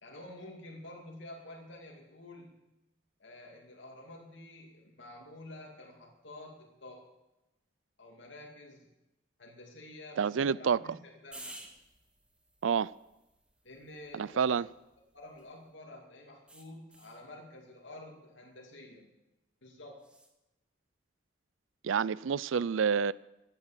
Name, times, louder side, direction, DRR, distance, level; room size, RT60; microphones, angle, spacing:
voice 1, 0.0-2.6 3.2-7.0 8.0-8.9 9.4-11.6 13.6-14.6 15.1-19.1 19.6-20.0, left 1 dB, 75° left, 2.6 m, -49 dB
voice 2, 10.2-10.8 12.6-12.9 14.1-14.7 21.8-23.1, right 6 dB, 85° right, 0.4 m, -28 dB
sound 1, 11.3-15.7 16.5-17.3 20.0-20.3, right 1 dB, 5° right, 1.2 m, -54 dB
15.0 x 10.0 x 7.4 m
head